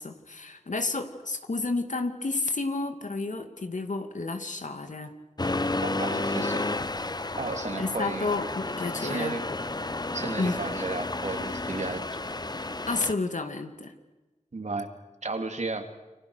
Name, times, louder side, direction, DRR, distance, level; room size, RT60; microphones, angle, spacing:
voice 1, 0.0-5.1 7.8-9.4 10.4-10.6 12.9-13.9, left 3 dB, 80° left, 7 dB, 2.7 m, -31 dB
Accelerating revving vroom, 5.4-13.1, left 2 dB, 35° left, 1.0 m, -31 dB
voice 2, 5.8-6.7 7.4-8.3 9.0-9.4 10.1-12.0 14.5-14.9 15.2-15.9, right 3 dB, 65° right, 6 dB, 3.1 m, -33 dB
29.5 x 25.5 x 6.5 m, 1.2 s
wide cardioid pair, 55°, 13 cm